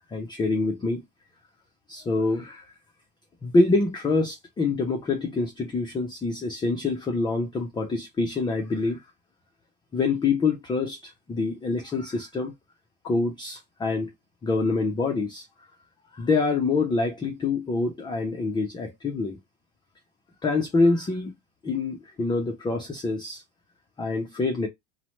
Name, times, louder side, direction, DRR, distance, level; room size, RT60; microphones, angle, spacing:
voice 1, 0.1-1.0 1.9-2.7 3.4-9.0 9.9-12.5 13.0-14.1 14.4-15.5 16.1-19.4 20.4-21.3 21.6-23.4 24.0-24.7, left 3 dB, 15° left, 0.4 m, -26 dB
2.9 x 2.1 x 3.0 m
supercardioid pair, 110°, 35 cm